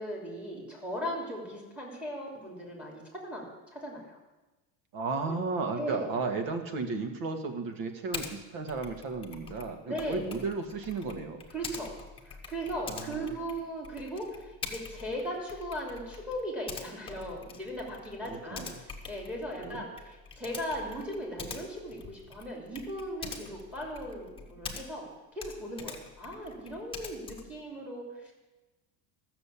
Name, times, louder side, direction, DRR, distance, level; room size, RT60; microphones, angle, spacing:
voice 1, 0.0-3.5 3.7-4.2 5.3-5.4 5.8-6.1 9.9-10.2 11.5-11.9 12.2-28.3, equal, 5° right, 0 dB, 3.0 m, -38 dB
voice 2, 4.9-11.4 12.8-13.5 18.2-18.8 19.6-19.8, right 4 dB, 60° right, 5 dB, 2.0 m, -34 dB
Typing, 8.1-8.3 8.7-25.1 25.4-27.6, left 5 dB, 15° left, 1.3 m, -45 dB
14.0 x 7.0 x 8.5 m, 1.1 s
cardioid pair, 160°, 39 cm